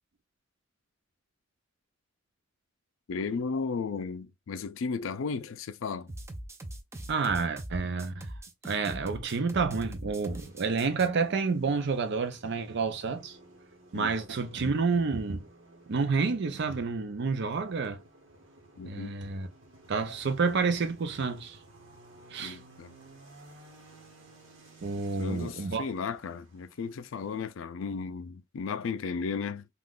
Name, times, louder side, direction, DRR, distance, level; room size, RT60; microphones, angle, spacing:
voice 1, 3.1-6.1 13.9-14.1 18.8-19.1 22.4-22.9 25.2-29.7, left 5 dB, 90° left, 0.4 m, -34 dB
sound 1, 6.1-11.1, right 1 dB, 15° right, 0.4 m, -41 dB
voice 2, 7.1-8.3 8.6-13.4 13.9-15.4 15.9-18.0 18.8-19.5 19.9-21.6 22.3-22.6 24.8-25.9, right 4 dB, 60° right, 0.5 m, -29 dB
sound 2, 10.1-27.5, right 2 dB, 80° right, 1.1 m, -56 dB
3.6 x 2.4 x 2.4 m
head